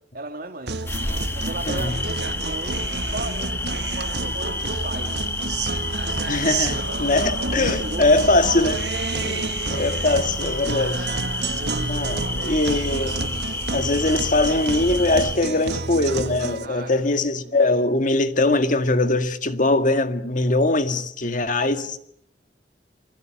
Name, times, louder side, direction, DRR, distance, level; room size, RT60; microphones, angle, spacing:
voice 1, 0.1-0.8 1.3-2.9 3.1-5.2 7.4-8.7 11.4-12.6 16.6-17.0 17.4-17.5, right 2 dB, 55° right, 2.2 m, -36 dB
Guitar, 0.7-16.6, right 3 dB, 70° right, 1.7 m, -30 dB
sound 1, 0.9-15.4, left 2 dB, 15° left, 1.4 m, -30 dB
voice 2, 6.3-8.8 9.1-11.1 11.9-13.3 13.7-22.0, left 2 dB, 50° left, 1.9 m, -22 dB
28.5 x 22.0 x 7.8 m
head